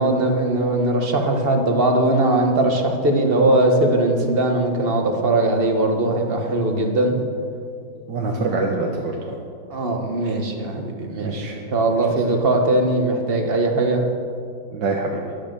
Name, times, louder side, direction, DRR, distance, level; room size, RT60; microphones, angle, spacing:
voice 1, 0.0-7.2 9.7-14.0, right 2 dB, 30° right, 3 dB, 1.5 m, -20 dB
voice 2, 8.1-9.3 10.2-10.4 11.2-11.7 14.7-15.2, right 3 dB, 70° right, 0 dB, 1.7 m, -25 dB
11.5 x 11.5 x 6.9 m, 2.3 s
omnidirectional pair, 2.1 m